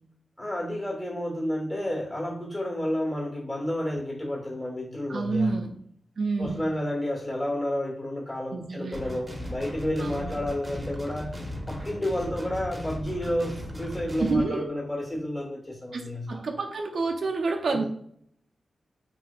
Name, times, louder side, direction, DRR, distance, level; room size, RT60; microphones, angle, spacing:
voice 1, 0.4-5.5 6.4-11.4 11.7-16.4 17.7-17.8, left 1 dB, 30° left, -2 dB, 1.2 m, -31 dB
voice 2, 5.1-5.7 6.2-6.8 8.5-9.0 10.0-10.4 14.2-14.7 15.9-17.8, right 3 dB, 70° right, 2 dB, 0.4 m, -28 dB
sound 1, 8.9-14.4, equal, 25° right, 0.6 m, -37 dB
2.8 x 2.4 x 2.2 m, 0.68 s
cardioid pair, 50°, 0 cm